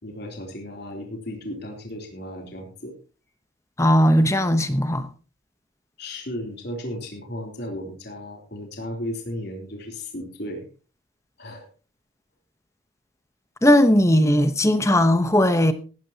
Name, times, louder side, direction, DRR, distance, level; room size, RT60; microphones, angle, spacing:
voice 1, 0.0-2.9 6.0-10.7 11.4-11.7, left 1 dB, 50° left, 3.4 m, -35 dB
voice 2, 3.8-5.1 13.6-15.7, equal, 15° left, 0.9 m, -18 dB
17.0 x 12.5 x 2.9 m
head